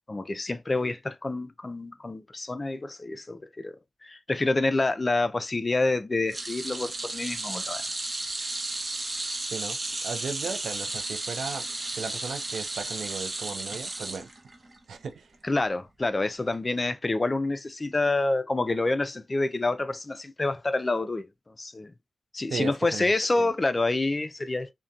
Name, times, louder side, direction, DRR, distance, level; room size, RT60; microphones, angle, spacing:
voice 1, 0.1-3.8 4.0-7.9 15.4-21.3 21.6-21.9 22.3-24.7, left 2 dB, 25° left, 0.3 m, -27 dB
sound 1, 6.3-14.8 15.1-15.4 16.5-16.6, right 2 dB, 30° right, 0.6 m, -34 dB
voice 2, 9.5-11.7 11.9-14.3 14.9-15.3 22.5-23.1 23.4-23.5, right 5 dB, 75° right, 0.4 m, -36 dB
2.7 x 2.1 x 2.3 m
cardioid pair, 80°, 0 cm